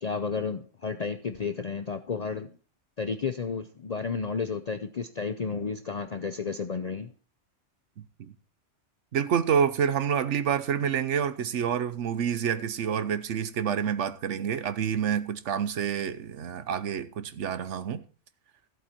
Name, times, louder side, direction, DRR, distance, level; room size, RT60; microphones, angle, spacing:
voice 1, 0.0-2.5 3.0-7.1, left 5 dB, 45° left, 0.6 m, -32 dB
voice 2, 9.1-18.0, right 8 dB, 75° right, 1.2 m, -28 dB
14.5 x 7.9 x 4.4 m
omnidirectional pair, 1.2 m